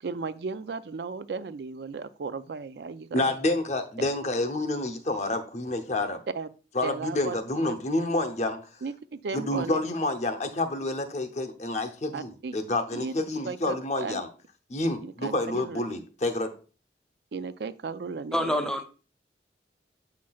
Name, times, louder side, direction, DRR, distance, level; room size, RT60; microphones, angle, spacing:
voice 1, 0.0-3.3 6.3-6.5 6.8-7.4 8.8-9.8 12.1-12.6 12.9-13.1 13.4-14.2 15.0-15.8 17.3-18.7, right 4 dB, 70° right, 12 dB, 0.4 m, -35 dB
voice 2, 3.1-6.2 6.7-8.6 9.3-14.3 14.7-16.5, left 2 dB, 40° left, 7 dB, 0.7 m, -28 dB
voice 3, 18.3-18.8, left 1 dB, 5° left, 5 dB, 0.6 m, -26 dB
7.4 x 5.8 x 2.3 m, 0.36 s
head